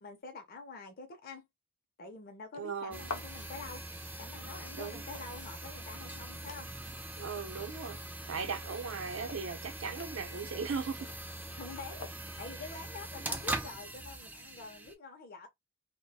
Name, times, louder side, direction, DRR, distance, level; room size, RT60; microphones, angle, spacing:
voice 1, 0.0-1.5 2.0-3.8 4.2-6.7 11.5-12.1 12.4-15.5, left 4 dB, 45° left, 0.5 m, -46 dB
voice 2, 2.5-3.1 4.8-5.0 7.2-8.0 8.3-11.1, right 5 dB, 75° right, 0.6 m, -38 dB
sound 1, 2.9-14.9, right 2 dB, 10° right, 0.3 m, -42 dB
sound 2, 3.0-12.6, left 4 dB, 85° left, 0.6 m, -51 dB
2.3 x 2.1 x 2.6 m
head